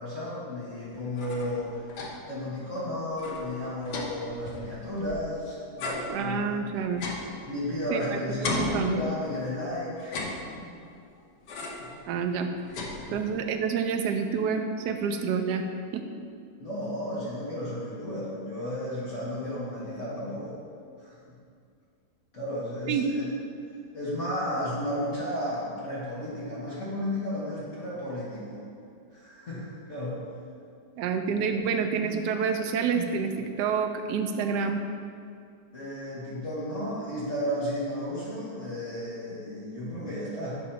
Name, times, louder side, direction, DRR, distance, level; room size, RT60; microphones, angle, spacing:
voice 1, 0.0-1.8 2.3-6.6 7.5-10.7 11.8-11.9 13.0-13.2 16.6-20.6 21.0-21.1 22.3-23.2 23.9-28.6 29.1-30.3 35.7-40.6, left 1 dB, 45° left, -9 dB, 1.6 m, -33 dB
sound 1, 0.9-2.4 2.7-2.8 3.1-5.3 5.8-8.0 8.4-9.5 10.0-10.9 11.5-12.0 12.3-13.5, left 2 dB, 70° left, 1.3 m, -36 dB
voice 2, 6.1-7.0 7.9-9.0 12.1-12.5 13.1-15.6 15.9-16.0 22.9-23.1 31.0-34.8, right 6 dB, 75° right, 5 dB, 1.1 m, -28 dB
8.8 x 3.1 x 5.6 m, 2.3 s
omnidirectional pair, 1.9 m